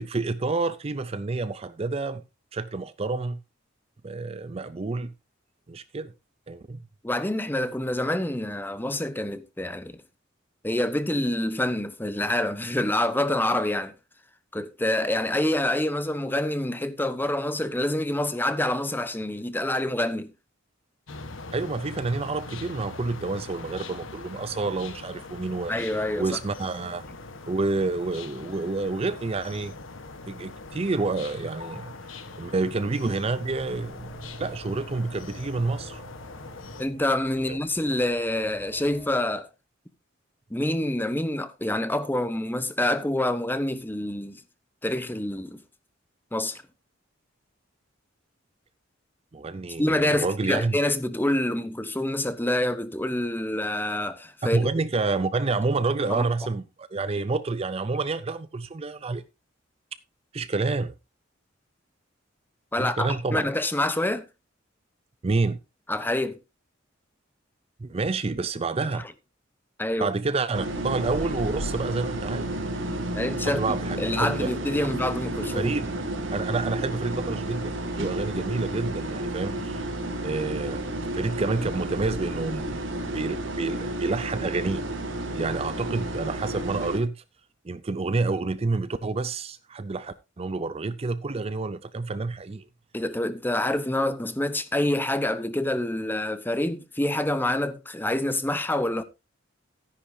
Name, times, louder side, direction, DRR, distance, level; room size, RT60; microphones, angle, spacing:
voice 1, 0.0-2.2 2.5-3.4 4.0-5.1 5.7-6.1 6.5-6.8 21.5-25.7 26.2-27.1 27.5-29.8 30.3-34.1 34.4-36.0 37.5-37.6 49.3-50.8 54.5-59.2 60.3-60.9 62.8-63.5 65.2-65.6 67.8-69.0 70.0-72.5 73.4-74.5 75.6-75.9 76.3-79.9 80.2-80.9 81.1-82.8 83.1-84.8 85.3-87.2 87.6-92.6, right 3 dB, 30° right, 0.5 m, -28 dB
voice 2, 7.0-10.0 10.6-13.9 14.5-20.3 25.7-26.3 36.8-39.5 40.5-44.4 44.8-45.6 46.3-46.6 49.8-54.7 56.1-56.3 62.7-64.2 65.9-66.4 69.8-70.1 73.2-73.6 74.0-75.7 92.9-99.0, left 1 dB, 10° left, 0.8 m, -27 dB
sound 1, 21.1-36.9, left 3 dB, 75° left, 1.3 m, -42 dB
sound 2, 32.2-39.1, right 1 dB, 40° left, 4.1 m, -47 dB
sound 3, 70.5-87.0, right 1 dB, 65° right, 2.2 m, -31 dB
13.5 x 10.0 x 2.7 m
head